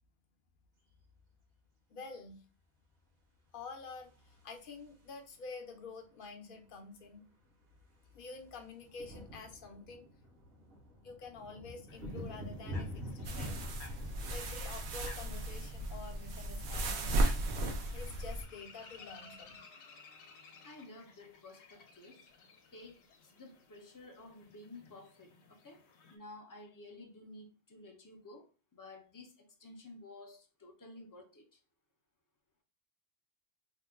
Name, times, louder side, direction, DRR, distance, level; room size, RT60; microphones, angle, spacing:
voice 1, 1.9-2.4 3.5-7.2 8.1-10.1 11.0-13.5 14.3-17.2 17.9-19.6, left 4 dB, 60° left, 0.8 m, -48 dB
sound 1, 3.8-5.3 6.7-6.8 6.9-7.2 7.5-19.5, equal, 65° right, 1.2 m, -48 dB
sound 2, 11.9-26.2, left 4 dB, 85° left, 0.9 m, -58 dB
sound 3, 13.2-18.4, right 1 dB, 90° right, 0.9 m, -35 dB
voice 2, 20.6-22.3 22.7-25.8 26.1-31.6, left 2 dB, 30° left, 0.4 m, -53 dB
2.9 x 2.2 x 3.3 m
omnidirectional pair, 1.1 m